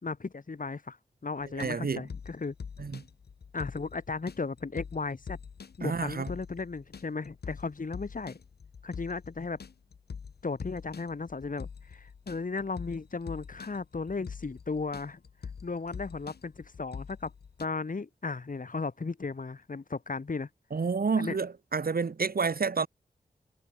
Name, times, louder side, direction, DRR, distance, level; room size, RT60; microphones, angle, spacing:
voice 1, 0.0-1.0 1.2-2.5 3.5-5.4 5.8-8.4 8.8-9.6 10.4-15.2 15.6-17.3 17.6-20.5 21.2-21.4, left 4 dB, 55° left, 5.8 m, -35 dB
sound 1, 1.4-17.7, left 6 dB, 80° left, 3.7 m, -45 dB
voice 2, 1.6-2.0 2.8-3.0 5.8-6.3 20.7-22.9, right 5 dB, 65° right, 5.2 m, -29 dB
cardioid pair, 45°, 16 cm